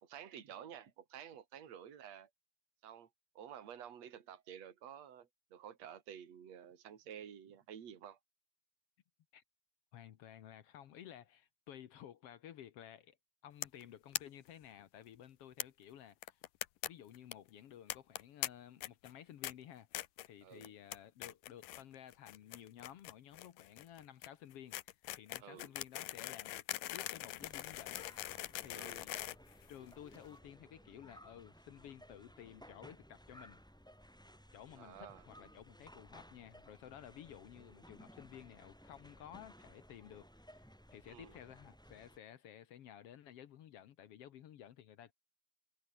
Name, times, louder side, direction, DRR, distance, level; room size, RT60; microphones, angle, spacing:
voice 1, 0.0-2.3 2.8-3.1 3.4-8.2 20.4-20.7 25.4-25.7 28.7-29.0 34.8-35.2 41.1-41.3, right 9 dB, 50° right, 3.6 m, -51 dB
voice 2, 9.9-13.2 13.4-16.4 16.9-19.9 20.2-28.0 28.6-29.2 29.7-33.6 34.5-45.1, left 10 dB, 65° left, 1.6 m, -54 dB
sound 1, 13.6-13.8 14.1-14.2 14.5-14.6 14.8-14.9 15.6-15.7 16.2-16.9 17.1-17.3 17.9-18.5 18.8-19.1 19.4-19.5 19.9-20.3 20.6-21.0 21.2-21.8 22.1-30.2, left 16 dB, 80° left, 2.4 m, -42 dB
sound 2, 27.4-42.2, equal, ahead, 7.4 m, -59 dB
omnidirectional pair, 3.9 m